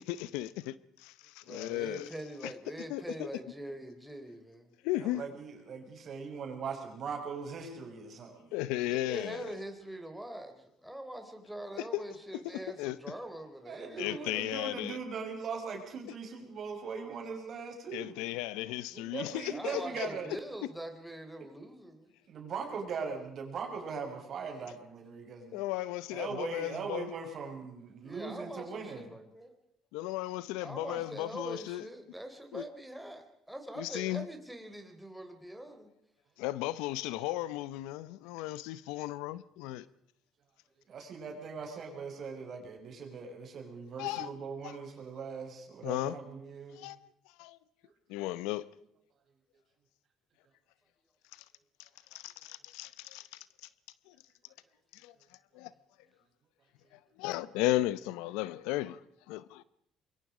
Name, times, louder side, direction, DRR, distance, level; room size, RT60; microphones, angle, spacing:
voice 1, 0.0-2.1 2.4-2.5 2.9-3.3 4.8-5.2 8.5-9.5 11.8-12.0 12.8-13.0 14.0-15.0 17.9-20.1 25.5-27.1 29.9-31.8 32.5-32.6 33.8-34.2 36.4-39.8 44.0-44.3 44.6-44.8 45.8-46.2 46.7-47.0 47.4-47.6 48.1-48.6 51.3-51.4 51.8-53.4 54.1-54.2 54.9-55.1 55.5-55.7 57.2-59.0 59.3-59.6, left 16 dB, 85° left, 0.7 m, -35 dB
voice 2, 1.4-4.7 8.9-14.9 19.3-22.1 28.0-29.6 30.6-35.9, right 1 dB, 5° right, 3.8 m, -44 dB
voice 3, 5.0-8.5 13.7-18.2 18.9-20.3 22.3-25.6 26.1-29.1 40.9-46.9, right 5 dB, 55° right, 5.7 m, -40 dB
25.0 x 21.5 x 5.0 m
supercardioid pair, 75°, 0 cm